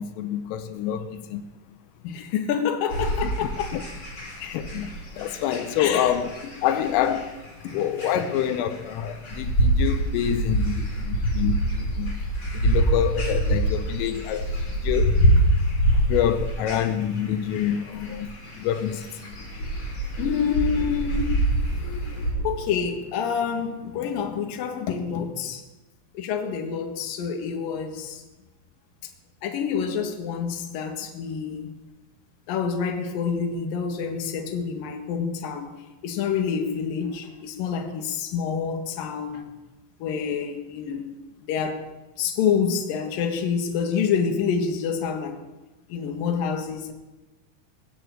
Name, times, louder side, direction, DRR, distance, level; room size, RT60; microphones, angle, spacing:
voice 1, 0.0-1.4 3.2-3.3 3.7-3.8 4.4-4.9 5.2-6.3 6.6-7.3 7.7-12.2 12.5-14.5 14.8-15.4 16.1-19.3 19.6-19.7 21.8-22.5, left 10 dB, 85° left, 3.4 m, -27 dB
voice 2, 2.0-3.8 4.8-4.9 5.8-6.2 6.8-7.1 7.6-7.9 8.1-8.3 20.2-21.3 22.4-25.6 26.1-28.2 29.4-31.7 32.5-35.7 36.0-39.5 40.0-41.8 42.2-45.4 45.9-46.9, left 7 dB, 60° left, 2.8 m, -27 dB
sound 1, 2.9-22.3, right 1 dB, 25° left, 3.9 m, -25 dB
21.0 x 8.1 x 7.8 m
omnidirectional pair, 5.8 m